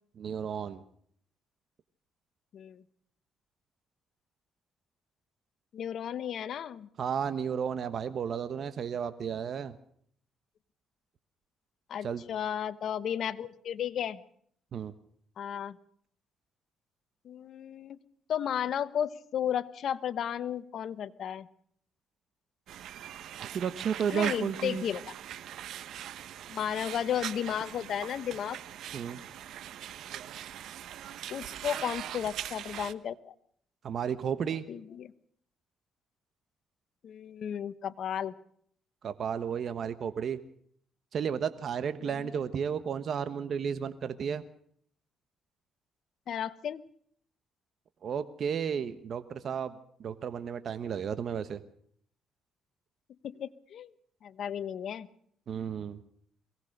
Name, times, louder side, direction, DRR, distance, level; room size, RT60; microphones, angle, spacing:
voice 1, 0.2-0.8 7.0-9.8 12.0-12.2 14.7-14.9 23.5-24.8 28.9-29.2 33.8-34.6 39.0-40.4 41.1-44.4 48.0-49.7 50.0-51.6 55.5-56.0, right 7 dB, 60° right, 11 dB, 1.1 m, -33 dB
voice 2, 2.5-2.8 5.7-6.9 11.9-14.2 15.4-15.8 17.2-18.0 18.3-21.5 24.1-25.1 26.5-28.6 31.3-33.3 34.7-35.1 37.0-38.3 42.0-42.2 46.3-46.8 53.2-53.9 54.2-55.1, left 9 dB, 65° left, 15 dB, 1.1 m, -34 dB
sound 1, 22.7-32.9, right 11 dB, 80° right, 1.0 m, -41 dB
23.0 x 18.0 x 6.6 m, 0.63 s
cardioid pair, 90°, 0 cm